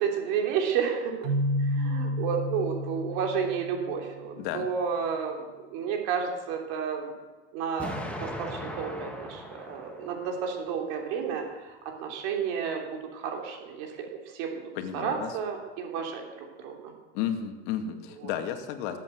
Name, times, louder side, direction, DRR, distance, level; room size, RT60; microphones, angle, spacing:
voice 1, 0.0-1.3 1.6-5.4 5.7-7.1 7.5-14.1 14.3-16.9 18.2-18.3, right 7 dB, 55° right, 2 dB, 3.2 m, -31 dB
Keyboard (musical), 1.2-4.1, left 1 dB, 75° right, 1.6 m, -30 dB
voice 2, 4.4-4.7 14.8-15.4 17.1-19.0, left 9 dB, 55° left, 6 dB, 2.2 m, -32 dB
Explosion, 7.8-10.8, left 1 dB, 5° left, 1.8 m, -39 dB
20.0 x 8.6 x 8.0 m, 1.3 s
supercardioid pair, 155°, 30 cm